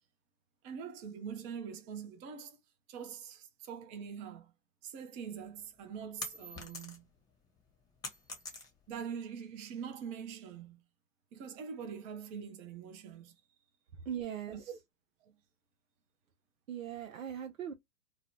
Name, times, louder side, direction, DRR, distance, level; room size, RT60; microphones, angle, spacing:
voice 1, 0.6-2.6 2.9-4.5 4.8-7.0 8.9-10.8 11.3-13.3 14.5-14.8 15.2-15.3, right 7 dB, 20° right, 0.4 m, -44 dB
sound 1, 5.4-7.2 7.6-9.0, left 2 dB, 10° left, 0.8 m, -44 dB
voice 2, 14.1-14.7 16.7-17.7, right 9 dB, 90° right, 0.6 m, -39 dB
2.7 x 2.0 x 2.9 m
hypercardioid pair, 120°, 39 cm